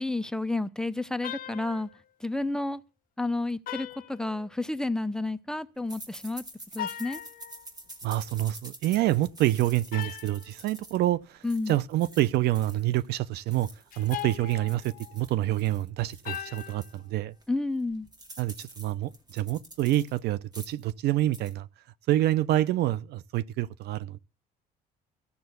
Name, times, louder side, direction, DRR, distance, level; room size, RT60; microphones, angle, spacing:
voice 1, 0.0-1.9 2.2-2.8 3.2-6.4 6.7-7.2 11.4-11.8 17.5-18.1, left 2 dB, 5° left, 0.6 m, -30 dB
sound 1, 1.2-2.0 3.7-4.8 6.7-7.7 9.9-10.5 13.9-15.2 16.3-17.0, left 12 dB, 55° left, 0.8 m, -39 dB
sound 2, 5.9-13.1 13.4-17.0 17.4-17.5 17.8-20.2 20.5-20.9 21.2-21.5, right 1 dB, 25° right, 2.2 m, -48 dB
voice 2, 8.0-13.7 14.0-17.3 18.4-21.7 22.1-24.2, right 14 dB, 75° right, 0.6 m, -27 dB
14.0 x 6.8 x 8.0 m
cardioid pair, 110°, 17 cm